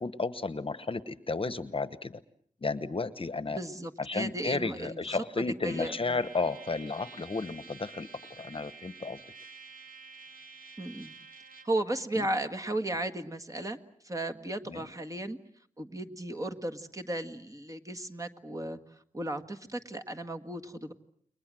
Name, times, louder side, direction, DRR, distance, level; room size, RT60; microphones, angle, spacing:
voice 1, 0.0-2.2 2.6-3.6 4.0-9.2 12.2-12.3 14.7-14.9, left 3 dB, 40° left, 14 dB, 1.1 m, -33 dB
voice 2, 3.5-6.2 10.8-11.1 11.6-13.8 14.0-15.4 15.8-18.8 19.1-20.9, right 1 dB, 25° right, 5 dB, 1.8 m, -35 dB
Trumpet, 5.7-11.8, right 4 dB, 80° right, 2.5 m, -50 dB
29.5 x 23.0 x 7.6 m, 0.64 s
wide cardioid pair, 95°, 14 cm